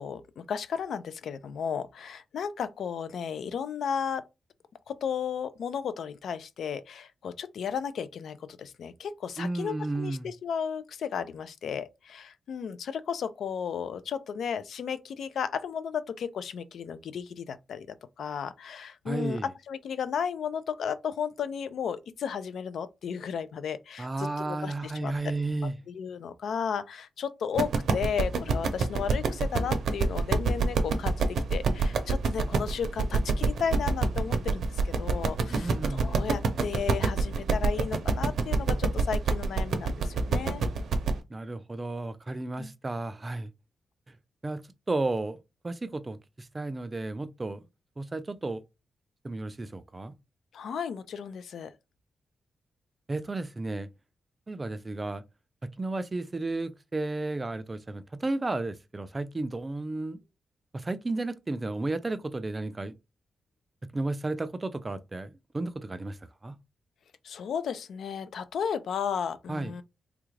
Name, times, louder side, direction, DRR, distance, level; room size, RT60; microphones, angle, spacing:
voice 1, 0.0-4.2 4.9-17.9 18.2-25.1 25.9-40.6 42.6-42.7 50.5-51.7 67.2-69.8, left 7 dB, 75° left, 0.4 m, -34 dB
voice 2, 9.4-10.3 19.1-19.5 24.0-25.7 35.5-36.2 41.3-43.5 44.4-44.6 44.9-45.4 45.6-47.6 48.0-48.6 49.2-50.1 53.1-53.9 54.5-55.2 55.6-60.2 60.7-62.9 63.9-66.2 66.4-66.5 69.5-69.7, right 2 dB, 25° right, 0.4 m, -33 dB
sound 1, 27.6-41.2, right 4 dB, 70° right, 0.6 m, -27 dB
3.4 x 2.4 x 3.1 m
cardioid pair, 115°, 0 cm